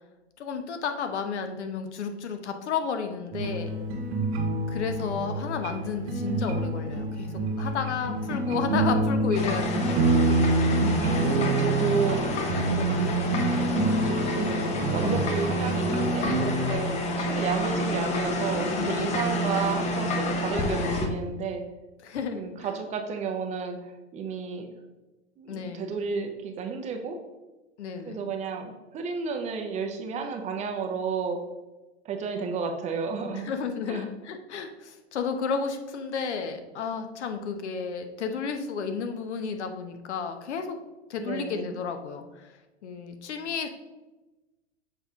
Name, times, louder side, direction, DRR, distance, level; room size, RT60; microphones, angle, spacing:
voice 1, 0.4-3.7 4.7-10.0 16.2-16.7 18.5-19.1 22.0-22.5 25.5-25.9 27.8-28.2 33.3-40.8 41.1-42.5 42.8-43.7, left 6 dB, 75° left, 6 dB, 0.9 m, -32 dB
sound 1, 3.3-16.7, right 2 dB, 60° right, 1.4 m, -27 dB
sound 2, 9.3-21.1, left 1 dB, 20° left, 0.6 m, -29 dB
voice 2, 10.8-12.2 12.6-13.1 14.0-21.6 22.3-24.7 25.4-27.2 28.1-31.4 32.0-33.5 33.9-34.1 41.2-41.8, right 5 dB, 20° right, 4 dB, 0.5 m, -32 dB
6.7 x 4.0 x 3.5 m, 1.1 s
hypercardioid pair, 120°, 34 cm